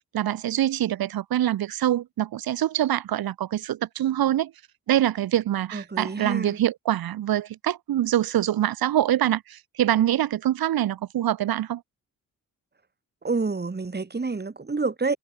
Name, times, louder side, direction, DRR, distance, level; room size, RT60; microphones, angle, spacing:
voice 1, 0.1-4.5 4.9-11.8, right 12 dB, 75° right, 2.3 m, -24 dB
voice 2, 5.7-6.6 13.2-15.2, right 4 dB, 30° right, 2.4 m, -28 dB
supercardioid pair, 50°, 36 cm